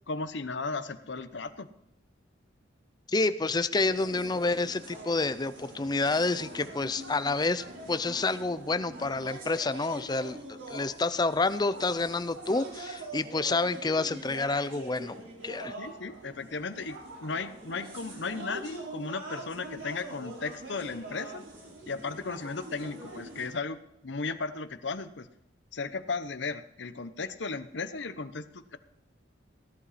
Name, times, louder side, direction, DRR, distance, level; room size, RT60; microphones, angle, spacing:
voice 1, 0.1-1.7 15.8-21.4 21.9-25.3 25.7-28.8, left 4 dB, 70° left, 12 dB, 0.8 m, -35 dB
voice 2, 3.1-15.1 15.4-15.7, left 3 dB, 20° left, 13 dB, 0.5 m, -29 dB
sound 1, 3.7-23.5, right 2 dB, 90° right, 4.2 m, -44 dB
16.5 x 11.0 x 4.2 m, 0.79 s
head